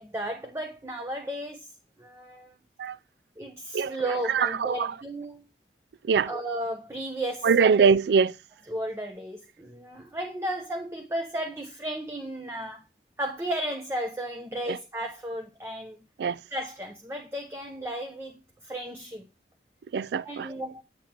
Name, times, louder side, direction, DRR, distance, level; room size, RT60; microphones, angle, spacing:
voice 1, 0.0-1.7 2.0-2.6 3.4-5.4 6.2-7.5 8.7-12.8 13.2-16.0 16.5-19.3 20.2-20.8, right 1 dB, 15° right, 0.8 m, -34 dB
voice 2, 4.3-4.9 6.1-6.3 7.4-8.3 14.7-14.8 16.2-16.4 19.9-20.5, right 6 dB, 70° right, 0.3 m, -22 dB
8.7 x 7.2 x 2.9 m
head